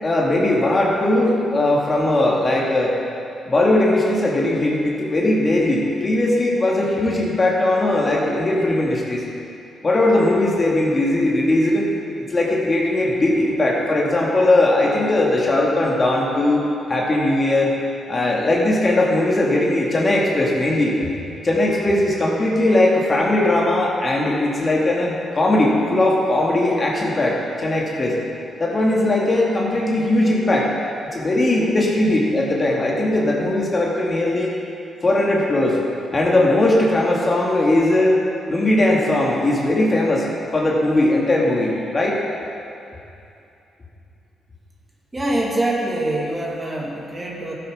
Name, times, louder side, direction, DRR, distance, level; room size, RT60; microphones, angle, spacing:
voice 1, 0.0-3.0 3.5-9.2 9.8-11.9 12.3-16.6 16.9-17.8 18.1-21.1 21.4-28.2 28.6-30.7 31.1-34.5 35.0-35.8 36.1-38.2 38.5-42.2, left 1 dB, 35° left, -3 dB, 2.4 m, -19 dB
voice 2, 45.1-47.5, right 1 dB, 25° right, -3 dB, 2.5 m, -24 dB
12.5 x 8.2 x 5.6 m, 2.7 s
supercardioid pair, 55°, 0 cm